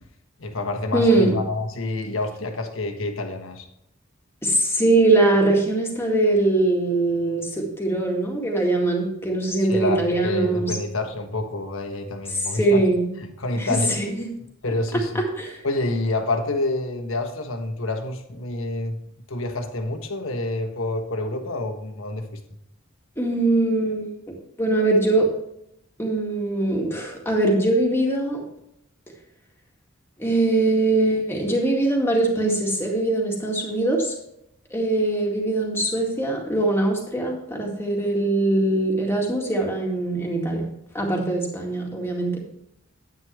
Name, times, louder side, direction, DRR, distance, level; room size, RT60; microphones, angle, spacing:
voice 1, 0.4-3.7 9.6-12.8 13.2-14.0 14.3-15.3 15.6-19.0 19.3-22.4, left 2 dB, 70° left, 5 dB, 1.4 m, -28 dB
voice 2, 0.9-1.4 4.4-10.7 12.5-13.1 13.6-14.3 15.1-15.6 23.2-25.3 26.0-28.4 30.2-34.1 34.7-40.7 40.9-42.4, right 2 dB, 10° left, -1 dB, 2.1 m, -22 dB
9.6 x 9.5 x 3.3 m, 0.79 s
head